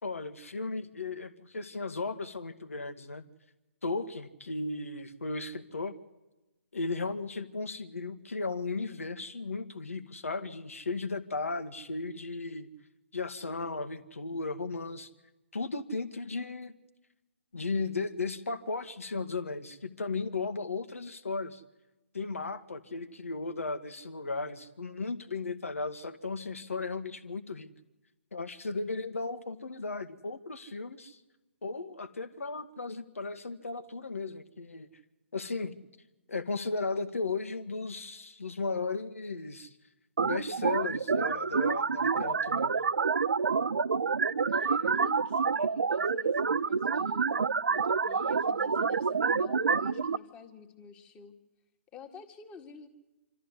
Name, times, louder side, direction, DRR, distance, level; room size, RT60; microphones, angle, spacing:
voice 1, 0.0-3.2 3.8-5.9 6.7-12.7 13.1-15.1 15.5-16.7 17.5-21.6 22.1-27.7 28.3-31.2 31.6-34.9 35.3-35.7 36.3-39.7 40.2-42.7, left 3 dB, 80° left, 10 dB, 1.7 m, -35 dB
sound 1, 40.2-50.2, right 5 dB, 80° right, 0.7 m, -28 dB
voice 2, 44.5-47.3 47.7-51.3 51.9-52.9, left 5 dB, 20° left, 6 dB, 1.9 m, -50 dB
25.5 x 13.5 x 9.7 m, 1.1 s
hypercardioid pair, 140°, 7 cm